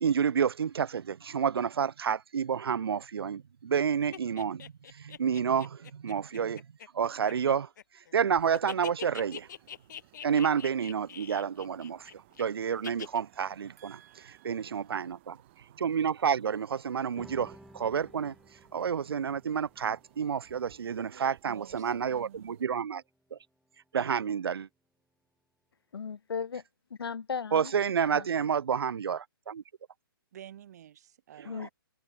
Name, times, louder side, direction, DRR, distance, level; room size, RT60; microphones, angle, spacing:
voice 1, 0.0-6.6 6.9-7.7 8.1-9.5 10.2-14.0 14.2-15.4 15.8-18.3 18.7-23.0 23.3-23.4 23.9-24.7 27.5-29.6 31.5-31.7, right 7 dB, 85° right, 0.7 m, -29 dB
sound 1, 4.1-8.1 8.4-12.4 12.8-13.2, left 9 dB, 50° left, 1.4 m, -43 dB
sound 2, 9.3-22.7, right 20 dB, 30° right, 4.0 m, -62 dB
voice 2, 13.8-15.1 21.4-22.6 30.3-31.7, right 10 dB, 45° right, 3.1 m, -52 dB
sound 3, 17.2-23.9, equal, ahead, 6.6 m, -57 dB
voice 3, 25.9-26.6 26.9-27.7 28.1-28.3 31.5-31.7, left 6 dB, 90° left, 1.7 m, -36 dB
hypercardioid pair, 165°, 12 cm